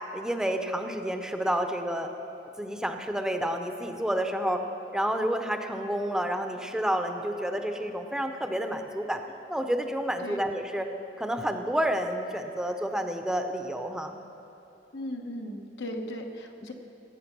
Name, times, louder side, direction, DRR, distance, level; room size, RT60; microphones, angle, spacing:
voice 1, 0.1-2.1 2.6-4.7 4.9-9.2 9.5-10.9 11.2-14.2 16.6-16.7, equal, 5° right, 5 dB, 0.6 m, -29 dB
voice 2, 14.9-16.7, left 1 dB, 80° left, 3 dB, 1.2 m, -37 dB
16.5 x 8.0 x 6.0 m, 2.9 s
head